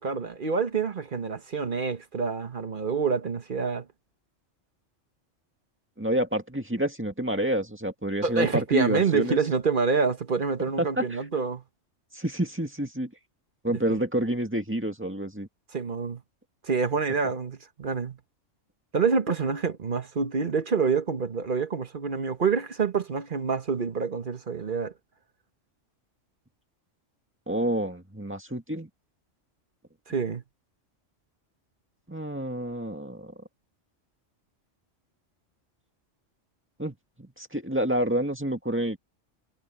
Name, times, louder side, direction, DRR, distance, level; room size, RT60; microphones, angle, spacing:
voice 1, 0.0-3.9 8.2-11.6 13.7-13.8 15.7-16.2 16.6-18.2 18.9-24.9 30.1-30.4, right 5 dB, 45° right, 1.2 m, -27 dB
voice 2, 6.0-9.4 10.8-11.2 12.1-13.1 13.6-15.5 27.5-28.9 32.1-33.3 36.8-36.9 37.4-39.0, right 1 dB, 10° right, 1.9 m, -28 dB
omnidirectional pair, 1.3 m